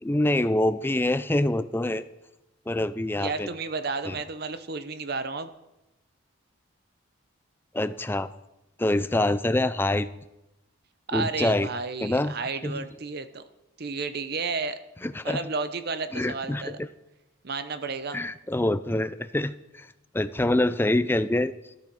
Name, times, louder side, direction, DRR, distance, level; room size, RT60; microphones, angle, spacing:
voice 1, 0.0-2.1 2.7-3.5 4.1-4.2 7.7-8.3 8.8-10.1 11.1-11.7 12.0-12.3 12.6-12.8 15.0-15.4 16.1-16.8 18.1-19.9 20.1-21.5, left 1 dB, 10° left, 13 dB, 0.4 m, -25 dB
voice 2, 3.2-5.5 11.1-13.4 13.8-14.8 15.2-16.8 17.4-18.2, right 4 dB, 45° right, 11 dB, 0.7 m, -32 dB
13.5 x 12.0 x 4.7 m, 0.96 s
head